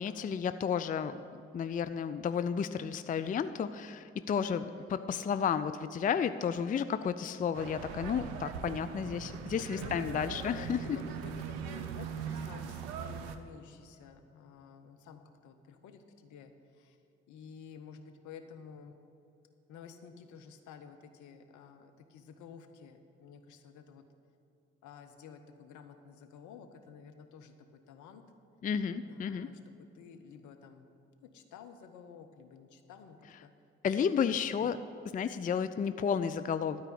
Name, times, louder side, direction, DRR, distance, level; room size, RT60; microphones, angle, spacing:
voice 1, 0.0-11.0 28.6-29.5 33.8-34.8 35.1-36.8, left 7 dB, 25° left, 12 dB, 0.4 m, -32 dB
voice 2, 4.4-5.1 9.6-17.0 17.3-19.0 19.7-24.1 24.8-28.2 29.0-30.9 31.2-33.5 34.1-34.2 34.6-34.7, left 6 dB, 65° left, 7 dB, 0.9 m, -51 dB
sound 1, 7.5-13.4, right 7 dB, 80° right, 0.6 m, -40 dB
12.5 x 4.8 x 8.4 m, 2.7 s
hypercardioid pair, 40°, 32 cm